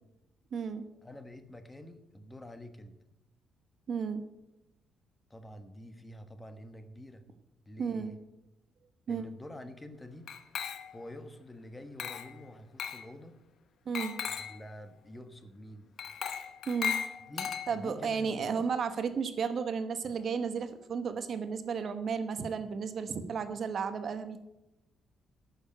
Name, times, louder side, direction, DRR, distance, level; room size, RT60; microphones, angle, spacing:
voice 1, 0.5-0.9 3.9-4.3 7.8-8.2 9.1-9.2 13.9-14.2 16.7-16.9 17.7-24.4, right 6 dB, 50° right, 10 dB, 1.0 m, -33 dB
voice 2, 1.0-2.9 5.3-7.2 7.7-8.2 9.1-10.3 10.9-13.4 14.2-15.9 17.2-18.7, left 1 dB, 15° left, 9 dB, 1.1 m, -47 dB
Glass, 10.3-11.1 12.0-12.4 12.8-13.1 14.0-14.6 16.0-18.0, left 7 dB, 60° left, 1.0 m, -37 dB
9.7 x 6.6 x 8.6 m, 0.89 s
cardioid pair, 110°, 0 cm